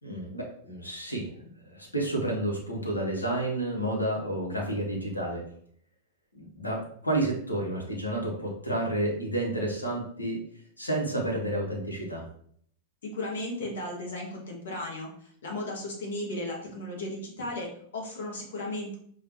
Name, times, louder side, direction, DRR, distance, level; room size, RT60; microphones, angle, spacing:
voice 1, 0.0-5.4 6.3-10.4 10.8-12.2, right 1 dB, 90° left, 0 dB, 1.0 m, -30 dB
voice 2, 13.0-19.0, left 1 dB, 70° left, -1 dB, 1.1 m, -35 dB
4.9 x 2.4 x 2.9 m, 0.63 s
figure-of-eight pair, 95°, 0 cm